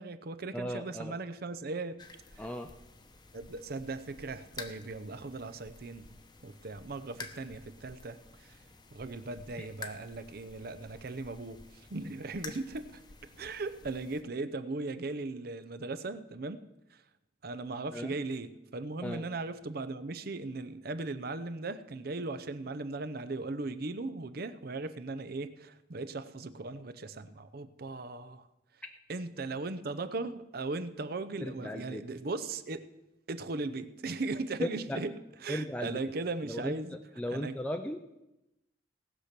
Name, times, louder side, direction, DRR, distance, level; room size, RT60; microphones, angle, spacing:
voice 1, 0.0-2.0 2.4-2.5 3.3-6.1 6.4-8.2 8.9-11.6 11.9-16.6 17.4-28.4 29.1-32.9 33.3-37.0 37.3-37.5, right 3 dB, 55° right, 12 dB, 0.7 m, -38 dB
voice 2, 0.5-1.1 2.4-2.7 9.6-9.7 17.9-18.1 19.0-19.3 31.4-32.0 34.6-35.0 35.5-36.0 36.4-36.7 37.2-38.0, equal, 5° left, 4 dB, 0.5 m, -36 dB
sound 1, 2.0-14.2, left 3 dB, 25° left, 0.8 m, -51 dB
18.5 x 6.7 x 5.9 m, 0.92 s
head